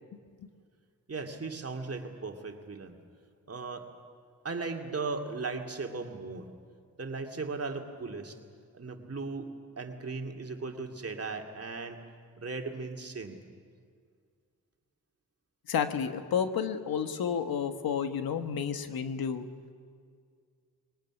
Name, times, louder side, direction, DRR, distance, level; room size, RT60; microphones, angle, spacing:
voice 1, 1.1-3.0 3.5-3.9 4.4-6.5 7.0-8.4 8.7-12.0 12.4-13.4, right 4 dB, 40° right, 3 dB, 2.5 m, -37 dB
voice 2, 15.7-19.5, left 7 dB, 85° left, 8 dB, 1.4 m, -31 dB
22.0 x 19.0 x 9.9 m, 2.1 s
cardioid pair, 70°, 35 cm